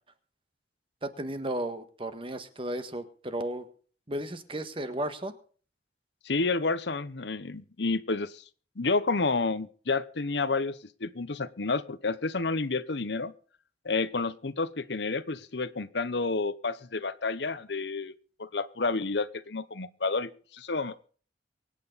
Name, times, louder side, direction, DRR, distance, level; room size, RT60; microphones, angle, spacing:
voice 1, 1.0-3.7 4.1-5.4, right 1 dB, 30° right, 9 dB, 1.6 m, -34 dB
voice 2, 6.2-8.4 8.8-13.3 13.8-18.1 18.4-21.0, left 3 dB, 75° left, 14 dB, 1.0 m, -30 dB
24.0 x 9.3 x 4.1 m, 0.43 s
head